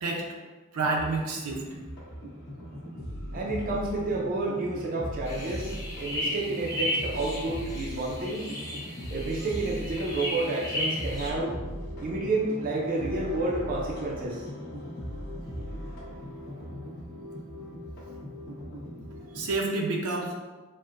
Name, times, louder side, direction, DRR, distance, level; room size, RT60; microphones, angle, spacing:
voice 1, 0.7-1.7 19.3-20.3, right 3 dB, 85° right, 0 dB, 0.6 m, -28 dB
sound 1, 0.8-19.6, equal, 45° left, 1.1 m, -39 dB
voice 2, 3.3-8.5 9.1-11.5 12.0-14.4, right 2 dB, 40° right, -2 dB, 0.4 m, -30 dB
sound 2, 5.3-11.3, left 1 dB, 15° left, 0.7 m, -35 dB
4.3 x 2.1 x 2.4 m, 1.3 s
head